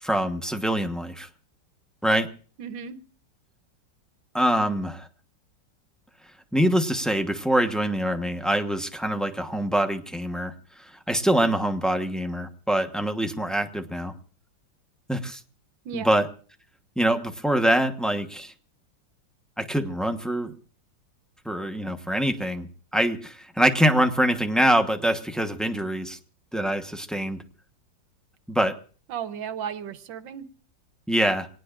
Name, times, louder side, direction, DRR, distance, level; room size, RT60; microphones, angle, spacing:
voice 1, 0.0-1.3 2.0-2.3 4.3-5.1 6.5-14.1 15.1-15.4 15.9-16.3 17.0-18.5 19.6-20.5 21.4-26.2 26.5-27.4 28.5-28.7 31.1-31.5, right 1 dB, ahead, 6 dB, 0.7 m, -24 dB
voice 2, 2.6-3.0 15.8-16.2 29.1-30.5, right 8 dB, 90° right, 12 dB, 1.6 m, -34 dB
26.0 x 18.5 x 2.5 m, 0.41 s
omnidirectional pair, 2.0 m